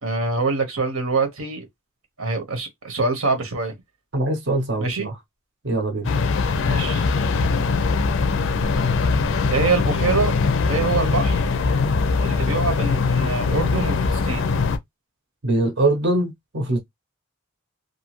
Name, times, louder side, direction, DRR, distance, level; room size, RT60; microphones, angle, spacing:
voice 1, 0.0-1.6 2.2-3.7 4.8-5.1 6.6-7.1 9.5-10.3 10.7-11.4 12.2-14.4, right 4 dB, 90° right, 1.0 m, -24 dB
voice 2, 4.1-4.8 5.6-6.1 15.4-16.8, right 2 dB, 55° right, 0.7 m, -22 dB
sound 1, 6.0-14.8, left 4 dB, 60° left, 0.4 m, -21 dB
2.7 x 2.3 x 3.0 m
head